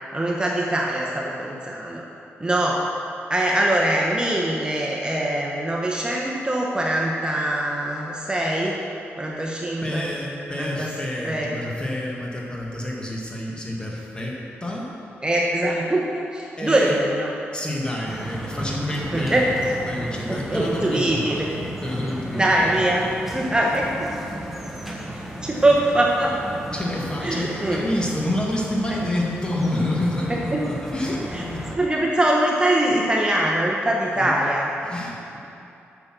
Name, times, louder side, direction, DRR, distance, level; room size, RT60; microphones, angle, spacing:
voice 1, 0.1-2.0 2.4-2.8 3.3-8.8 9.2-10.1 10.6-10.9 11.2-11.6 15.2-17.3 19.1-19.4 20.3-21.5 22.3-24.1 25.1-26.4 27.2-27.8 28.9-29.0 30.5-30.6 31.3-31.4 31.8-34.7, right 1 dB, 20° right, -2 dB, 1.1 m, -23 dB
voice 2, 9.8-14.9 16.6-17.0 17.5-19.5 19.9-21.5 21.8-22.6 26.7-31.6 34.1-34.3 34.8-35.4, left 1 dB, 20° left, -3 dB, 2.0 m, -28 dB
sound 1, 18.0-31.8, right 1 dB, 5° right, 1.3 m, -34 dB
8.4 x 6.8 x 6.2 m, 2.8 s
cardioid pair, 70°, 5 cm